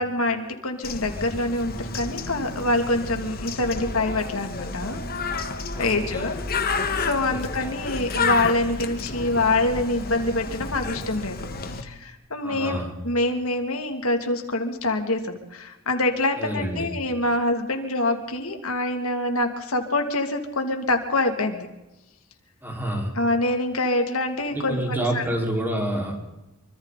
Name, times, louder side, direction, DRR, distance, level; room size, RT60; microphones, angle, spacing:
voice 1, 0.0-5.5 5.8-6.4 7.0-11.4 11.6-12.8 13.0-21.7 23.1-25.2, left 2 dB, 85° left, 4 dB, 2.9 m, -25 dB
Bird, 0.8-11.8, left 4 dB, 45° left, 1.9 m, -30 dB
voice 2, 5.7-6.2 7.3-7.7 12.4-12.9 16.4-16.9 22.6-23.1 24.5-26.2, right 1 dB, 10° right, 0 dB, 5.2 m, -28 dB
26.5 x 25.0 x 4.3 m, 1.0 s
head